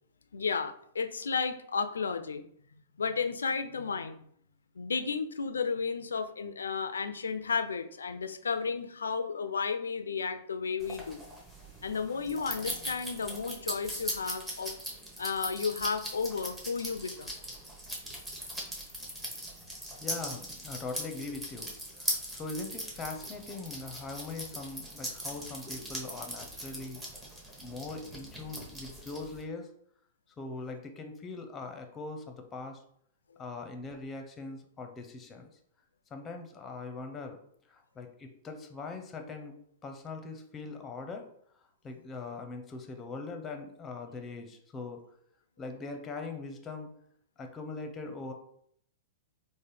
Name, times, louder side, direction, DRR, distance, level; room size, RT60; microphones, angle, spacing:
voice 1, 0.3-2.4 3.0-4.2 4.8-11.2 11.8-14.8 15.2-17.4, left 5 dB, 85° left, 10 dB, 0.3 m, -33 dB
sound 1, 10.8-29.4, equal, 10° right, 1.0 m, -40 dB
voice 2, 20.0-21.7 22.0-27.0 27.6-29.7 30.4-32.8 33.4-35.5 36.1-37.4 37.7-39.5 39.8-41.3 41.8-45.0 45.6-46.9 47.4-48.3, left 3 dB, 20° left, 5 dB, 0.6 m, -41 dB
3.8 x 2.1 x 3.2 m, 0.66 s
hypercardioid pair, 115°, 0 cm